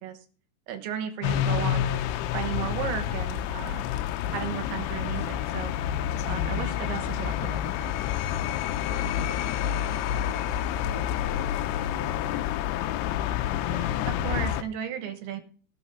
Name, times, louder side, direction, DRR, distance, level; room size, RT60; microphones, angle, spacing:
voice 1, 0.7-2.0 2.3-3.8 4.3-5.7 6.3-8.0 13.7-15.4, right 9 dB, 75° right, 9 dB, 3.4 m, -34 dB
sound 1, 1.2-14.6, left 11 dB, 90° left, 2.3 m, -28 dB
voice 2, 8.8-13.7, left 3 dB, 10° left, 4 dB, 1.2 m, -47 dB
17.5 x 6.5 x 5.6 m, 0.42 s
omnidirectional pair, 5.7 m